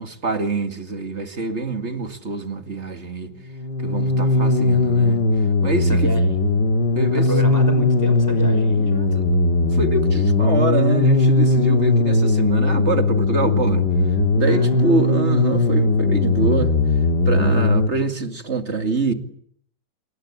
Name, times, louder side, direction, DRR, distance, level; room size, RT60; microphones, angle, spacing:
voice 1, 0.0-3.3 3.8-5.2 5.6-6.1 6.9-7.3 9.1-9.2 9.7-13.8 14.3-16.7 17.3-19.1, right 3 dB, 40° right, 2.6 m, -25 dB
sound 1, 3.5-17.9, left 2 dB, 65° left, 3.0 m, -18 dB
voice 2, 5.9-6.4 7.3-9.1 14.4-15.0, equal, 10° left, 6.0 m, -30 dB
27.5 x 22.5 x 8.9 m
omnidirectional pair, 1.9 m